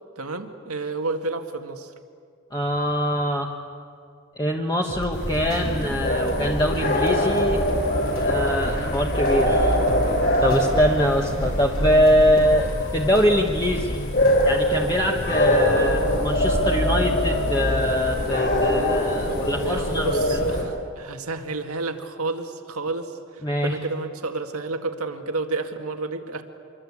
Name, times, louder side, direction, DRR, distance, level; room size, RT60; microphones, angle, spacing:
voice 1, 0.2-1.9 19.3-26.4, right 3 dB, 85° right, 5 dB, 2.0 m, -31 dB
voice 2, 2.5-3.5 4.4-7.6 8.2-9.8 10.0-10.1 10.4-14.0 14.4-20.4 23.4-23.8, equal, 20° left, 0 dB, 1.3 m, -23 dB
sound 1, 4.9-5.8 6.1-9.0 9.2-10.8 11.1-14.0 14.2-14.9, equal, 80° left, 6.0 m, -36 dB
sound 2, 5.1-20.6, equal, 50° left, 5.5 m, -23 dB
sound 3, 5.9-6.0 6.8-6.9 7.7-7.8 8.7-8.8 9.6-9.7 10.5-10.6 11.4-11.5 12.4-12.5 13.3-13.4 14.2-14.3, right 2 dB, 30° right, 1.7 m, -34 dB
26.0 x 23.0 x 8.7 m, 2.4 s
head